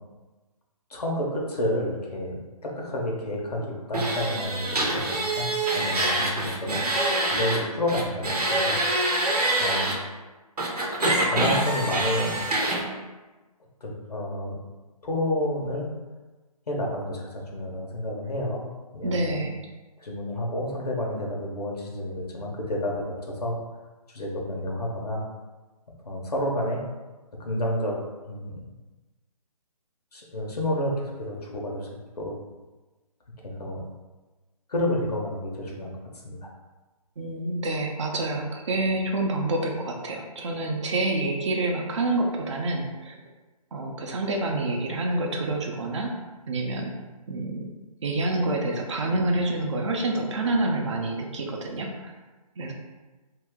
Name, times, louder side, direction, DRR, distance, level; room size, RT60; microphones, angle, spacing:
voice 1, 0.9-5.5 5.7-9.1 9.6-9.9 11.3-12.4 13.8-14.6 15.0-15.9 16.7-18.6 18.9-19.4 20.0-23.5 24.1-25.2 26.0-26.8 27.4-28.0 28.2-28.6 30.1-31.9 32.2-32.3 33.4-33.8 34.7-35.9 36.2-36.4, left 1 dB, 80° left, -1 dB, 1.0 m, -30 dB
sound 1, 3.9-7.6 7.9-9.9 10.6-12.8, right 2 dB, 80° right, 0.8 m, -25 dB
voice 2, 19.0-19.5 37.2-43.2 43.7-46.1 46.5-46.9 47.3-47.7 48.0-52.1 52.6-52.7, right 2 dB, 50° right, 1 dB, 0.6 m, -27 dB
2.8 x 2.5 x 3.6 m, 1.2 s
figure-of-eight pair, 145°, 20 cm